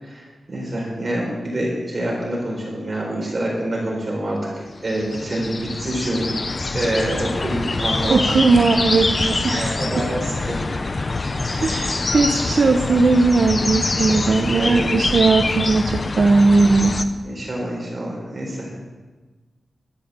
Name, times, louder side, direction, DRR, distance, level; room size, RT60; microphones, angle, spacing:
voice 1, 0.0-6.3 6.7-8.2 9.5-10.7 11.5-11.8 14.1-14.3 14.5-14.9 17.2-18.7, right 1 dB, 35° right, -3 dB, 4.5 m, -26 dB
sound 1, 4.8-17.1, left 3 dB, 40° left, 0.9 m, -25 dB
voice 2, 8.1-10.0 11.6-16.9, right 3 dB, 55° right, 5 dB, 0.9 m, -18 dB
13.0 x 10.5 x 7.5 m, 1.3 s
wide cardioid pair, 90°, 0 cm